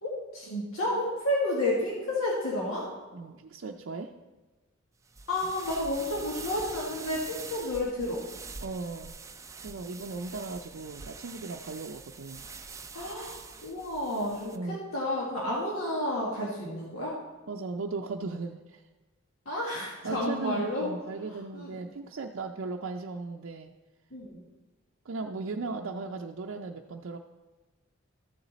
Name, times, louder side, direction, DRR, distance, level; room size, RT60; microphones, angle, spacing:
voice 1, 0.0-2.9 5.3-8.2 12.9-17.2 19.5-20.9 21.5-21.7 24.1-24.4, left 1 dB, 85° left, -4 dB, 1.7 m, -31 dB
voice 2, 3.1-4.2 8.6-9.1 9.6-12.4 14.5-14.9 17.5-18.8 20.0-23.7 25.1-27.2, right 3 dB, 65° right, 1 dB, 0.5 m, -37 dB
sound 1, 5.1-14.6, right 4 dB, 15° right, 0.4 m, -45 dB
13.5 x 7.1 x 4.0 m, 1.2 s
head